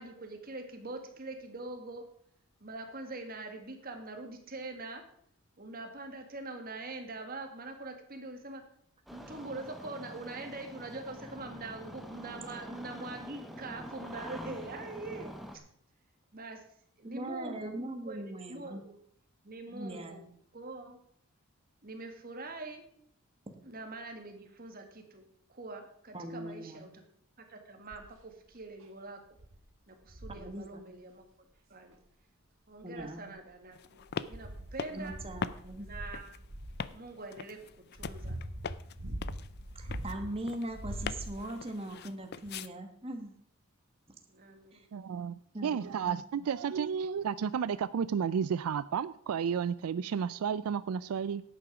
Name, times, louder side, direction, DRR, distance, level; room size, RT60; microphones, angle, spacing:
voice 1, 0.0-2.0 2.6-5.0 5.6-8.6 9.1-15.3 16.3-16.6 17.0-17.8 18.0-19.0 19.4-20.2 20.5-21.0 21.8-22.8 23.6-27.0 27.4-29.2 29.9-31.3 31.7-32.0 32.7-35.2 35.8-36.3 36.9-37.6 37.9-38.4 44.3-44.9, right 2 dB, 45° right, 5 dB, 1.8 m, -44 dB
Engine starting, 9.1-15.6, equal, ahead, 1.0 m, -46 dB
voice 2, 17.0-18.8 19.7-20.3 26.1-26.8 30.3-30.8 32.8-33.3 34.9-35.9 39.7-43.4 44.7-44.9 45.5-46.2, right 1 dB, 25° right, 5 dB, 1.4 m, -40 dB
sound 1, 27.9-28.2 28.8-28.9 29.4-29.6 30.1-30.5 31.9-32.0 32.8-33.5 34.0-36.9 37.6-40.3 40.7-41.6 42.5-42.6, right 1 dB, 65° right, 1.8 m, -42 dB
sound 2, 33.7-42.7, left 6 dB, 50° left, 0.4 m, -42 dB
voice 3, 44.9-51.4, right 7 dB, 85° right, 16 dB, 0.4 m, -32 dB
11.0 x 8.8 x 4.9 m, 0.66 s
head